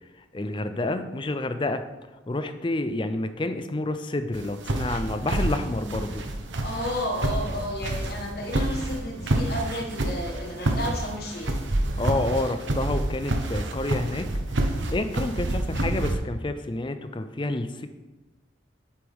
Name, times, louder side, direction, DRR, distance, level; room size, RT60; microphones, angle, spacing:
voice 1, 0.3-1.8 2.3-6.2 12.0-14.3 14.9-17.9, left 2 dB, 25° left, 9 dB, 0.5 m, -29 dB
sound 1, 4.3-16.1, right 1 dB, 75° right, 1.0 m, -28 dB
voice 2, 6.5-11.6, left 1 dB, 55° left, 1 dB, 1.5 m, -32 dB
8.7 x 7.8 x 3.6 m, 1.1 s
head